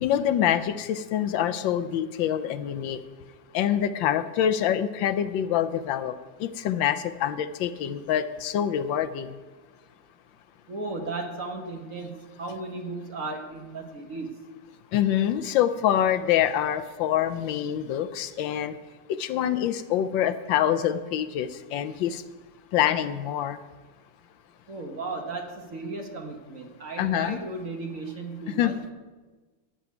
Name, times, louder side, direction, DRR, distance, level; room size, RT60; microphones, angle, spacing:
voice 1, 0.0-3.0 3.5-6.1 6.4-9.3 14.9-18.7 19.1-22.2 22.7-23.6 27.0-27.4 28.6-28.7, left 10 dB, 75° left, 12 dB, 1.3 m, -25 dB
voice 2, 10.7-14.4 24.7-28.9, right 3 dB, 45° right, 3 dB, 1.5 m, -35 dB
11.0 x 7.0 x 9.4 m, 1.3 s
omnidirectional pair, 2.1 m